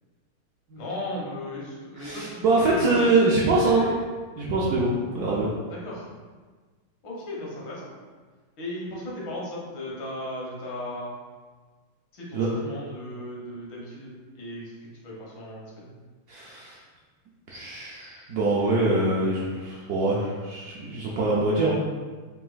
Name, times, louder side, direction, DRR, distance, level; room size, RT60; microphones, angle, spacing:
voice 1, 0.8-3.1 3.6-4.0 5.7-6.1 7.0-7.9 8.6-11.1 12.1-14.7 15.0-15.9, left 1 dB, 75° left, -4 dB, 1.8 m, -36 dB
voice 2, 2.0-3.9 4.4-5.5 12.3-12.7 16.3-16.8 17.5-21.8, right 2 dB, 70° right, -5 dB, 0.9 m, -24 dB
4.1 x 2.6 x 3.8 m, 1.4 s
omnidirectional pair, 2.1 m